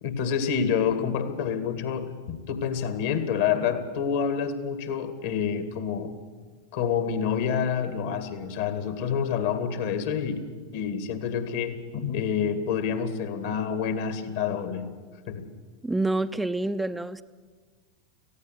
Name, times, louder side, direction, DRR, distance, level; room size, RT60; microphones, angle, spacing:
voice 1, 0.0-6.2 6.7-10.5 10.7-14.9 15.3-15.5, left 7 dB, 65° left, 10 dB, 2.3 m, -28 dB
voice 2, 15.8-17.2, right 2 dB, 5° right, 10 dB, 0.6 m, -27 dB
18.0 x 15.5 x 9.8 m, 1.5 s
hypercardioid pair, 90°, 0 cm